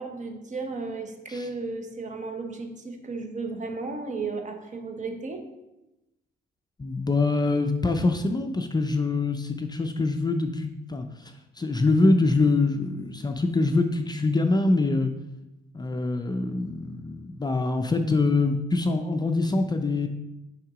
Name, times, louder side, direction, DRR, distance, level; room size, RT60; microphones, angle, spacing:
voice 1, 0.0-5.5, right 3 dB, 40° right, 5 dB, 0.9 m, -34 dB
voice 2, 6.8-15.1 15.7-20.1, left 3 dB, 20° left, 5 dB, 0.4 m, -24 dB
5.7 x 3.6 x 4.9 m, 0.96 s
cardioid pair, 90°, 20 cm